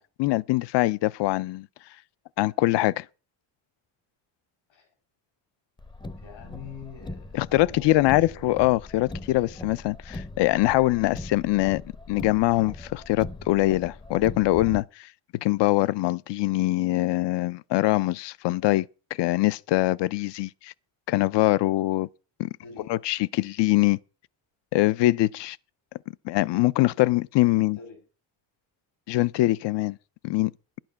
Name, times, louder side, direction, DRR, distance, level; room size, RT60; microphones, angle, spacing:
voice 1, 0.0-1.7 2.4-3.1 7.3-11.8 12.1-15.1 15.4-18.9 19.2-20.7 21.1-22.1 22.4-22.5 22.9-24.0 24.7-25.6 26.2-27.8 29.1-30.0 30.2-30.5, left 18 dB, 65° left, 0.5 m, -23 dB
Car, 5.8-14.8, left 2 dB, 10° left, 0.5 m, -40 dB
voice 2, 6.2-8.5 22.6-22.9 27.4-28.0, left 5 dB, 85° left, 6.0 m, -46 dB
11.5 x 8.9 x 5.7 m
cardioid pair, 160°, 45 cm